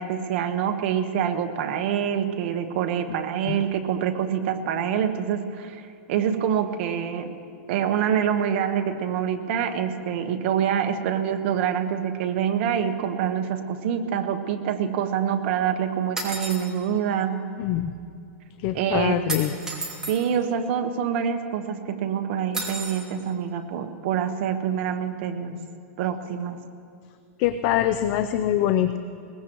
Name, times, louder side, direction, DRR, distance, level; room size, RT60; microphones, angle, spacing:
voice 1, 0.0-7.3 7.7-17.5 18.7-19.3 20.1-25.6 26.0-26.6, right 8 dB, 50° right, 5 dB, 1.3 m, -26 dB
sound 1, 16.2-16.7 19.3-20.2 22.5-23.0, right 2 dB, 10° right, 2.4 m, -31 dB
voice 2, 17.6-17.9 18.6-19.5 27.4-29.0, left 11 dB, 40° left, 9 dB, 0.6 m, -24 dB
21.5 x 19.5 x 3.1 m, 2.4 s
supercardioid pair, 150°, 8 cm